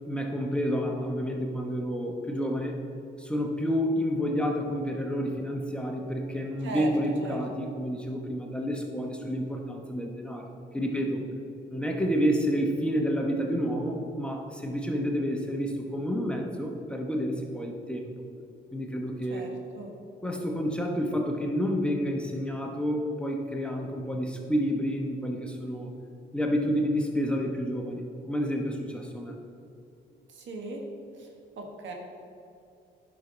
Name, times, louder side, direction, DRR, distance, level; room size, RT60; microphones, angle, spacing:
voice 1, 0.1-2.8 3.2-11.2 11.7-18.1 18.7-19.4 20.2-25.9 26.3-29.3, equal, 5° left, 1 dB, 1.1 m, -29 dB
voice 2, 19.3-19.9 30.3-30.8 31.2-31.3 31.6-31.9, right 3 dB, 70° right, 1 dB, 1.4 m, -38 dB
10.0 x 5.9 x 3.9 m, 2.6 s
cardioid pair, 90°, 20 cm